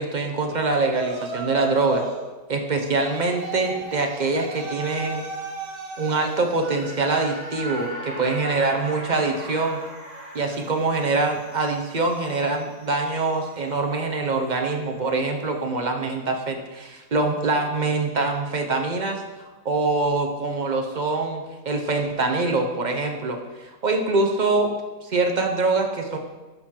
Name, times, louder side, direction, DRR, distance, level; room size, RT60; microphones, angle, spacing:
voice 1, 0.0-2.1 2.5-5.2 6.0-9.8 10.3-19.2 19.6-24.7 25.0-26.2, right 3 dB, 40° right, 3 dB, 0.6 m, -24 dB
Yell, 0.9-2.3 3.0-6.3, right 4 dB, 75° right, 1.6 m, -34 dB
sound 1, 2.9-15.2 15.6-15.7, right 1 dB, 20° right, 2.3 m, -41 dB
12.0 x 4.5 x 3.7 m, 1.2 s
omnidirectional pair, 1.6 m